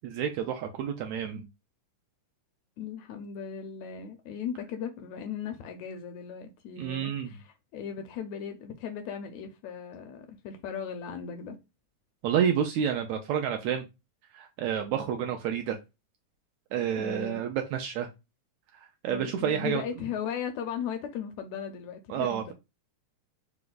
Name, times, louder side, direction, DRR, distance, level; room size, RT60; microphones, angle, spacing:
voice 1, 0.0-1.5 6.8-7.4 12.2-13.8 14.3-15.8 16.7-18.1 18.7-19.8 22.1-22.5, right 9 dB, 80° right, 1.6 m, -29 dB
voice 2, 2.8-11.6 17.0-17.4 19.1-22.5, left 7 dB, 80° left, 1.8 m, -37 dB
5.0 x 2.3 x 3.8 m
omnidirectional pair, 3.6 m